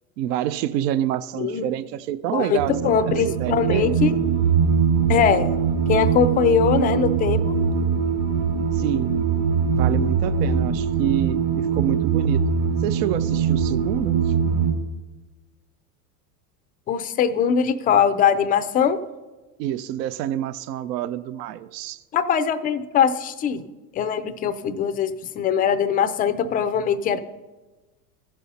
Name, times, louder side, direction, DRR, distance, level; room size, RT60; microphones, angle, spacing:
voice 1, 0.2-2.7 3.1-4.0 8.7-9.2 9.7-12.4 12.8-14.3 19.6-22.0, right 11 dB, 80° right, 15 dB, 0.6 m, -27 dB
voice 2, 2.3-4.1 5.1-5.6 5.9-7.6 16.9-19.0 22.1-23.6 23.9-27.2, left 7 dB, 20° left, 12 dB, 0.3 m, -21 dB
sound 1, 2.6-14.7, right 6 dB, 60° right, 2.0 m, -22 dB
15.5 x 5.5 x 4.1 m, 1.2 s
supercardioid pair, 105°, 48 cm